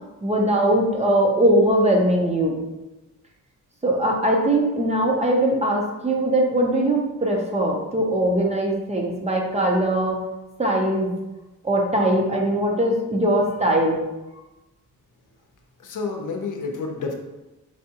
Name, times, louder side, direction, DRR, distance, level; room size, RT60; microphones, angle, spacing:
voice 1, 0.2-2.6 3.8-10.2 10.6-11.1 11.6-14.0, right 1 dB, 20° right, -1 dB, 0.7 m, -21 dB
voice 2, 15.8-17.1, left 4 dB, 65° left, 3 dB, 0.7 m, -29 dB
4.8 x 3.5 x 2.8 m, 1.0 s
wide cardioid pair, 155°, 33 cm